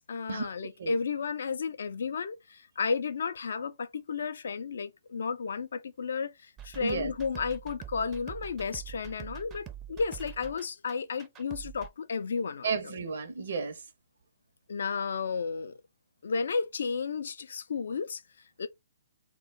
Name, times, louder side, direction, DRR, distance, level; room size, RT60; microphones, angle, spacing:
voice 1, 0.0-12.7 14.7-15.8 16.2-18.2 18.6-18.7, left 5 dB, 70° left, 0.3 m, -33 dB
sound 1, 6.6-11.9, right 10 dB, 20° right, 0.4 m, -45 dB
voice 2, 6.8-7.1 12.6-13.8, right 5 dB, 70° right, 0.6 m, -33 dB
2.2 x 2.1 x 3.6 m
hypercardioid pair, 135°, 0 cm